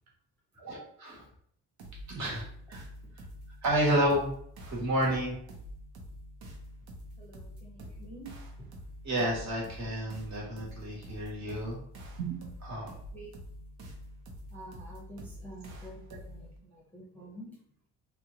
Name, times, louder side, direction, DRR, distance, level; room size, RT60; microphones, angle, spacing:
voice 1, 0.6-1.2 2.1-2.4 2.7-2.8 3.6-4.3 4.7-5.3 9.0-11.8 12.2-12.9, right 1 dB, 50° right, -3 dB, 1.3 m, -30 dB
sound 1, 1.8-16.6, equal, 85° right, 0.9 m, -47 dB
voice 2, 7.2-8.3 13.1-13.3 14.5-17.6, right 1 dB, 5° left, -5 dB, 0.6 m, -48 dB
2.9 x 2.2 x 3.6 m, 0.64 s
cardioid pair, 175°, 35 cm